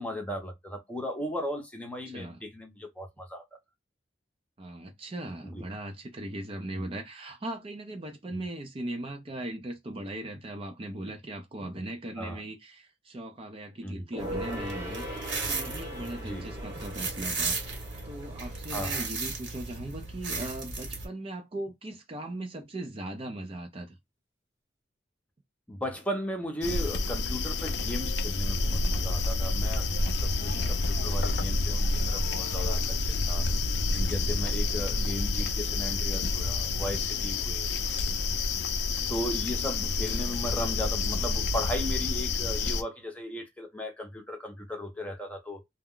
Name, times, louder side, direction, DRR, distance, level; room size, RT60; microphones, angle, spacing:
voice 1, 0.0-3.4 5.4-5.6 6.7-6.9 12.2-12.4 13.8-14.0 16.2-16.5 18.7-19.0 25.7-33.4 33.7-38.0 39.1-45.6, equal, 10° left, 0.7 m, -36 dB
voice 2, 2.1-2.4 4.6-17.7 18.1-24.0 30.5-30.8 37.7-37.8, right 1 dB, 30° right, 0.4 m, -39 dB
Gong, 14.1-20.0 20.3-20.4, equal, 15° right, 0.9 m, -41 dB
sound 1, 14.2-21.1, right 3 dB, 85° right, 1.2 m, -35 dB
sound 2, 26.6-42.8, left 3 dB, 70° left, 0.5 m, -28 dB
2.3 x 2.1 x 3.5 m
head